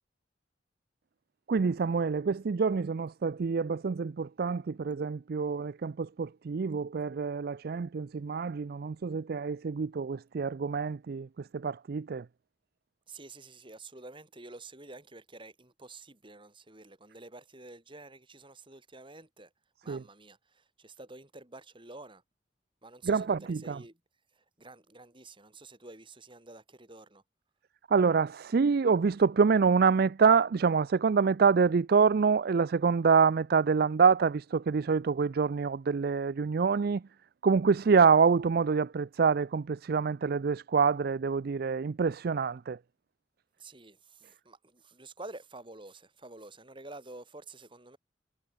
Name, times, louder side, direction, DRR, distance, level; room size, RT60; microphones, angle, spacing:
voice 1, 1.5-11.3 11.5-12.2 19.9-20.0 23.0-23.8 27.9-37.0 37.4-42.8, right 5 dB, 55° right, 0.4 m, -26 dB
voice 2, 13.1-19.5 19.8-22.2 22.8-24.0 24.4-27.2 43.6-48.0, right 2 dB, 30° right, 3.8 m, -49 dB
head